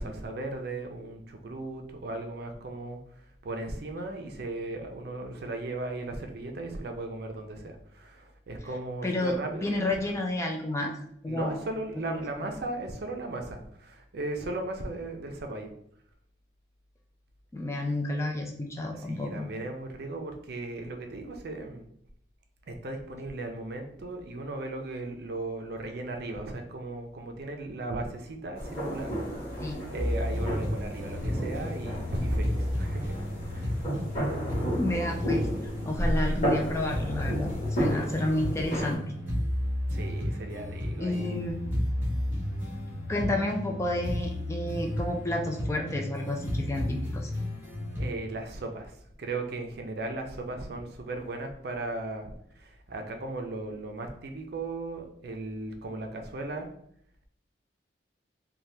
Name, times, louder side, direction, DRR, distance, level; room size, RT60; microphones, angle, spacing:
voice 1, 0.0-9.8 11.3-15.7 18.9-21.8 22.7-29.1 29.4-33.9 39.9-41.4 48.0-56.7, right 2 dB, 60° right, 4 dB, 0.5 m, -37 dB
voice 2, 9.0-9.3 9.6-10.9 11.2-11.6 12.1-12.2 17.5-19.5 29.6-29.8 34.7-35.5 35.8-39.0 41.0-41.6 43.1-47.3, left 1 dB, 15° left, 2 dB, 0.3 m, -30 dB
sound 1, 28.6-39.0, equal, 40° left, 1.1 m, -32 dB
sound 2, 30.0-48.1, left 1 dB, 10° right, 0.9 m, -32 dB
2.8 x 2.2 x 3.2 m, 0.68 s
head